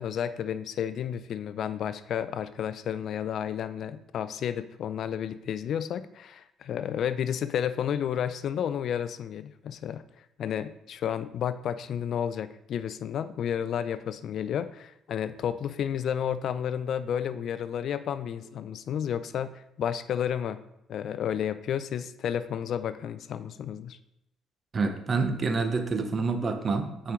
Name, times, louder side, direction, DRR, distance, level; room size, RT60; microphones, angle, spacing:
voice 1, 0.0-10.0 10.4-20.6 20.9-24.0, left 9 dB, 55° left, 13 dB, 0.4 m, -31 dB
voice 2, 24.7-27.1, right 4 dB, 30° right, 7 dB, 0.7 m, -28 dB
8.5 x 4.5 x 3.6 m, 0.81 s
cardioid pair, 150°, 0 cm